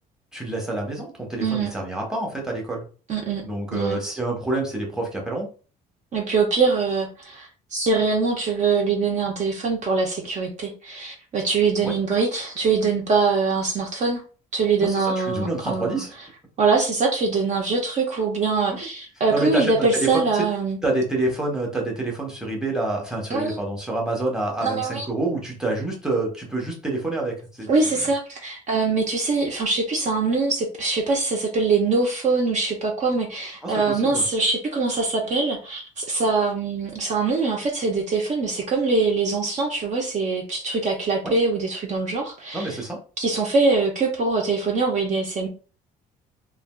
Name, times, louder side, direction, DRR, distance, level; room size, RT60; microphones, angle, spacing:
voice 1, 0.3-2.9 3.4-5.5 11.8-11.9 14.8-16.1 18.7-18.9 19.3-20.5 20.8-27.7 33.6-34.3 41.2-41.3 42.5-43.0, right 2 dB, 5° right, -1 dB, 1.1 m, -27 dB
voice 2, 1.4-1.7 3.1-3.4 3.7-4.0 6.1-14.2 14.5-16.0 16.6-20.8 23.3-23.6 24.6-25.1 27.7-42.8 43.2-45.5, right 4 dB, 45° right, 0 dB, 0.7 m, -23 dB
3.3 x 2.5 x 2.3 m, 0.36 s
cardioid pair, 110°, 17 cm